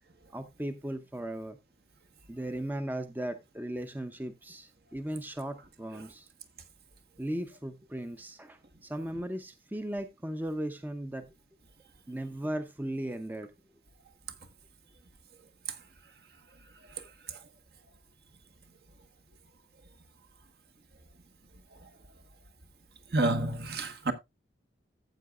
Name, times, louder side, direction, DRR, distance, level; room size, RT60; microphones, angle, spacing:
voice 1, 0.3-1.6 2.3-6.3 7.2-11.3 12.1-13.5, right 1 dB, 10° right, 0.6 m, -37 dB
voice 2, 23.1-24.1, right 2 dB, 60° right, 1.2 m, -28 dB
14.0 x 7.8 x 2.3 m
head